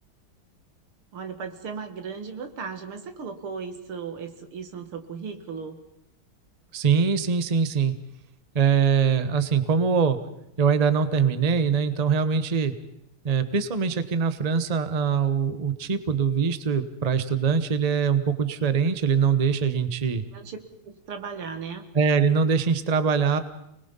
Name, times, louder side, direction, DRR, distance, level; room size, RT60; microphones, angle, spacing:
voice 1, 1.1-5.8 20.3-20.6 20.8-21.8, right 5 dB, 85° right, 7 dB, 2.8 m, -36 dB
voice 2, 6.7-7.9 8.5-10.2 10.6-12.7 13.2-20.2 21.9-23.4, right 6 dB, 25° right, 11 dB, 0.9 m, -23 dB
29.5 x 20.5 x 5.5 m, 0.78 s
omnidirectional pair, 2.3 m